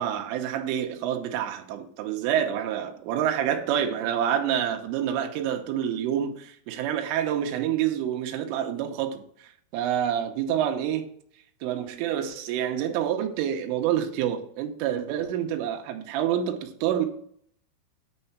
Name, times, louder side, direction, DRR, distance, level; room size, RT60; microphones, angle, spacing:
voice 1, 0.0-9.2 9.7-11.1 11.6-17.1, right 10 dB, 80° right, 3.5 m, -27 dB
9.9 x 4.4 x 5.8 m
omnidirectional pair, 5.8 m